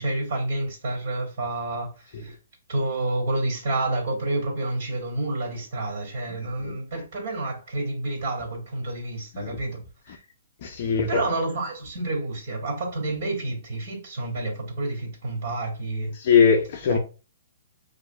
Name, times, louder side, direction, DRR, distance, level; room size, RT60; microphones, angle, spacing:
voice 1, 0.0-1.9 2.2-2.4 2.7-9.8 11.1-16.1 16.9-17.0, right 2 dB, 45° right, 2.2 m, -29 dB
voice 2, 10.6-11.2 16.2-17.0, left 6 dB, 35° left, 0.5 m, -21 dB
6.6 x 2.6 x 2.3 m
hypercardioid pair, 175°, 0 cm